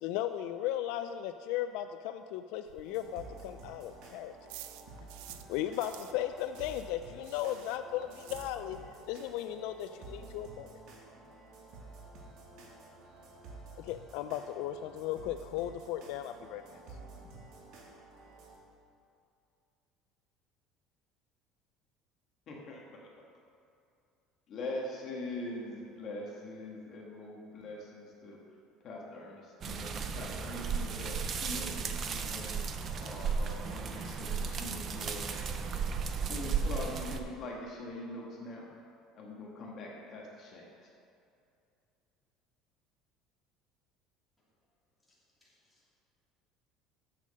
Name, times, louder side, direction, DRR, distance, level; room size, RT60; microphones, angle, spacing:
voice 1, 0.0-4.4 5.5-8.8 9.1-10.8 13.8-16.6, left 12 dB, 70° left, 9 dB, 0.3 m, -36 dB
sound 1, 2.7-5.5 5.8-9.0 9.3-9.4 9.7-9.8 10.0-10.4, right 13 dB, 90° right, 0.5 m, -51 dB
sound 2, 2.8-18.6, right 3 dB, 55° right, 1.6 m, -51 dB
voice 2, 22.5-22.8 24.5-28.4 28.8-35.4 36.2-38.7 39.1-40.7, left 2 dB, 35° left, -2 dB, 1.5 m, -43 dB
sound 3, 29.6-37.2, right 6 dB, 30° right, 0.5 m, -35 dB
voice 3, 45.4-45.9, left 1 dB, 5° left, -9 dB, 2.6 m, -71 dB
7.5 x 7.3 x 6.3 m, 2.6 s
cardioid pair, 170°, 0 cm